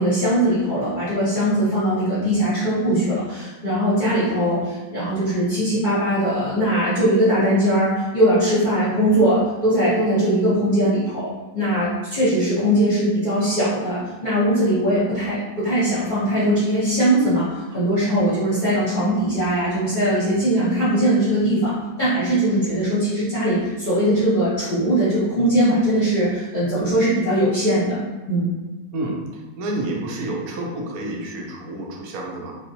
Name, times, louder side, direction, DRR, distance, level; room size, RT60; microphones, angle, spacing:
voice 1, 0.0-11.3 11.5-21.7 22.0-28.0 28.3-28.5, right 1 dB, 35° left, -12 dB, 0.9 m, -20 dB
voice 2, 29.6-32.6, right 1 dB, 65° right, 0 dB, 1.0 m, -29 dB
3.7 x 2.4 x 2.7 m, 1.2 s
omnidirectional pair, 1.9 m